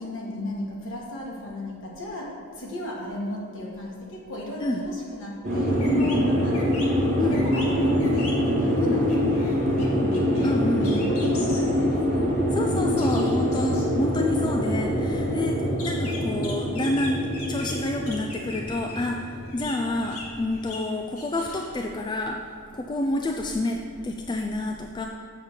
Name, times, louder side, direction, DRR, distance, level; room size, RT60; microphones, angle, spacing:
voice 1, 0.0-12.3, equal, 60° left, -3 dB, 1.7 m, -35 dB
sound 1, 5.4-20.3, left 1 dB, 40° right, 1.9 m, -25 dB
sound 2, 5.5-5.6 5.8-6.2 6.5-6.9 7.3-8.6 9.1-9.9 10.1-10.5 10.8-11.8 12.1-12.2 13.0-13.8 15.8-17.8 18.1-19.0 19.3-20.9 21.2-21.7, left 2 dB, 85° left, 1.8 m, -40 dB
voice 2, 10.4-11.1 12.5-17.2 17.5-22.4 22.7-25.1, left 1 dB, 20° left, 2 dB, 0.3 m, -28 dB
7.2 x 4.4 x 6.7 m, 2.3 s
head